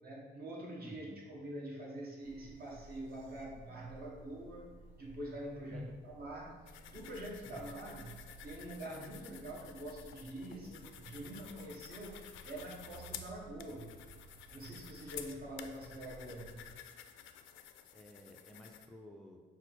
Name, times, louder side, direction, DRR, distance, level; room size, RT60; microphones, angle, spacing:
voice 1, 0.0-14.0 14.5-16.7, right 1 dB, 50° right, -3 dB, 1.3 m, -46 dB
voice 2, 0.8-1.2 5.7-6.0 7.5-7.7 17.9-19.4, left 1 dB, ahead, 2 dB, 0.4 m, -51 dB
sound 1, 2.2-16.8, right 3 dB, 80° right, 0.6 m, -57 dB
sound 2, 6.7-18.9, left 10 dB, 80° left, 0.4 m, -52 dB
5.8 x 2.0 x 4.5 m, 1.5 s
cardioid pair, 90°, 20 cm